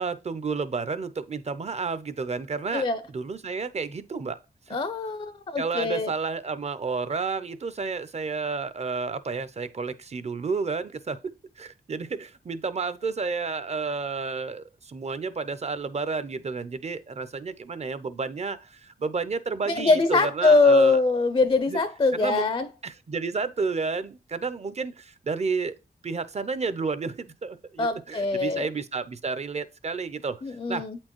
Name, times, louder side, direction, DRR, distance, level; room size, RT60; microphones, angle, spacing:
voice 1, 0.0-2.9 3.1-4.4 4.7-4.8 5.6-21.0 21.7-21.8 22.2-22.5 22.8-25.7 26.0-30.4 30.7-30.9, right 4 dB, 45° right, 0.5 m, -31 dB
voice 2, 4.7-6.1 19.7-22.7 27.8-28.7 30.4-31.0, left 3 dB, 35° left, 0.4 m, -22 dB
8.1 x 4.4 x 3.0 m
wide cardioid pair, 90°, 16 cm